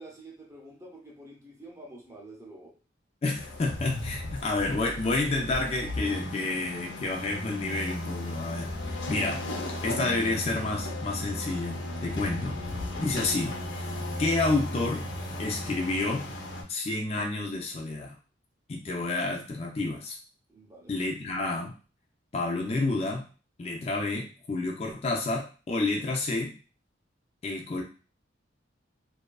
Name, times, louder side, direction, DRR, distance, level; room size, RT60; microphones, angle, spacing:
voice 1, 0.0-2.7 20.5-21.0, right 1 dB, 15° right, -2 dB, 0.6 m, -48 dB
voice 2, 3.2-9.4 9.8-12.6 13.0-13.5 13.8-15.0 15.4-16.3 16.7-18.2 18.7-20.2 20.9-21.8 22.3-23.2 23.6-26.6 27.4-27.8, left 2 dB, 35° left, 0 dB, 0.4 m, -30 dB
sound 1, 3.4-16.6, left 1 dB, 85° left, 0.8 m, -35 dB
2.7 x 2.4 x 2.3 m, 0.35 s
head